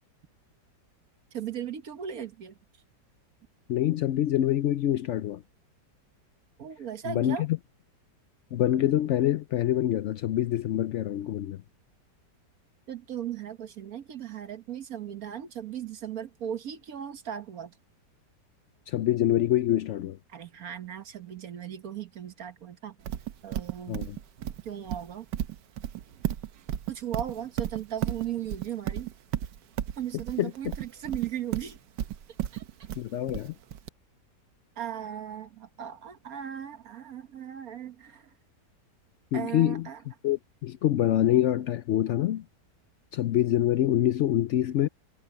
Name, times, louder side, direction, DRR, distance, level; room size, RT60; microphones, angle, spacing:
voice 1, 1.3-2.6 6.6-7.5 12.9-17.8 20.3-23.0 23.4-24.1 24.6-25.3 26.9-29.1 30.0-31.8 32.5-32.6 34.8-38.3 39.3-40.0, right 9 dB, 60° right, 1.5 m, -37 dB
voice 2, 3.7-5.4 7.0-7.6 8.5-11.6 18.9-20.2 23.9-24.2 30.4-30.5 33.0-33.5 39.3-39.9 40.2-42.4 43.1-44.9, left 12 dB, 85° left, 0.6 m, -25 dB
Livestock farm animals working animals, 23.1-33.9, right 11 dB, 90° right, 1.5 m, -33 dB
omnidirectional pair, 1.8 m